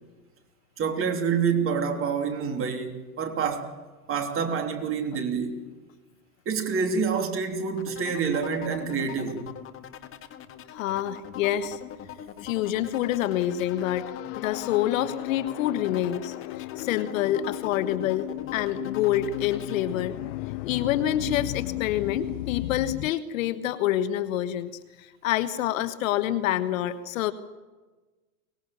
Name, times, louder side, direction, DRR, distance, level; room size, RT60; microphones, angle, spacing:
voice 1, 0.8-3.7 4.1-5.7 6.4-9.5, right 6 dB, 30° right, 3.0 m, -27 dB
sound 1, 7.8-19.8, left 9 dB, 30° left, 1.8 m, -42 dB
voice 2, 10.7-11.8 12.4-14.1 14.4-20.1 20.6-27.3, left 12 dB, 60° left, 1.4 m, -27 dB
sound 2, 12.8-23.1, left 20 dB, 45° left, 0.7 m, -35 dB
23.5 x 20.5 x 7.1 m
hypercardioid pair, 115°, 44 cm